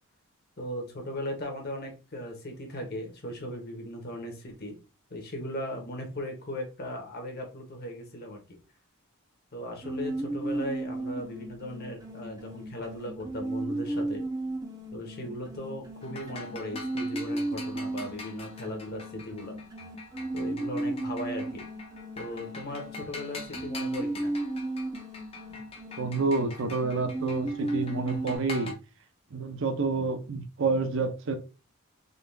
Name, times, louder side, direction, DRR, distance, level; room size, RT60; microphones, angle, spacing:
voice 1, 0.6-4.8 5.1-8.6 9.5-14.2 14.9-19.6 20.3-21.6 22.2-24.3, left 1 dB, 45° left, 1.1 m, -38 dB
sound 1, 9.8-28.4, right 2 dB, 15° right, 0.6 m, -35 dB
sound 2, 16.0-28.7, left 3 dB, 25° left, 0.6 m, -45 dB
voice 2, 26.0-28.7 29.3-31.4, right 3 dB, 60° right, 0.6 m, -28 dB
3.9 x 2.4 x 3.3 m
head